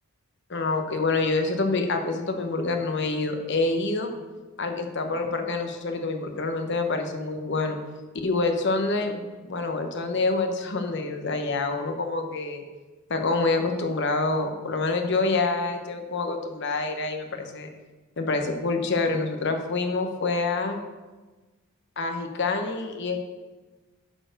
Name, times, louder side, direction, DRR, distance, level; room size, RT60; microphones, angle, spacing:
voice 1, 0.5-4.1 4.6-7.8 8.2-12.6 13.1-17.7 18.2-20.8 22.0-23.2, left 3 dB, 55° left, 5 dB, 1.0 m, -27 dB
9.8 x 4.4 x 6.4 m, 1.2 s
head